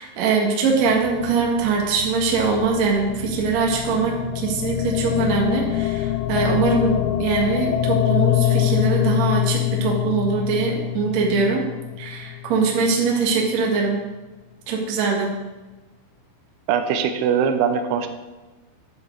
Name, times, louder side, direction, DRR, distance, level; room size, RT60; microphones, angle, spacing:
voice 1, 0.0-11.6 12.0-14.0 14.7-15.3, right 4 dB, 65° right, -1 dB, 1.7 m, -22 dB
sound 1, 0.7-12.9, left 15 dB, 90° left, 3.2 m, -25 dB
voice 2, 16.7-18.1, right 7 dB, 85° right, 5 dB, 2.4 m, -21 dB
10.5 x 7.7 x 4.7 m, 1.2 s
omnidirectional pair, 5.8 m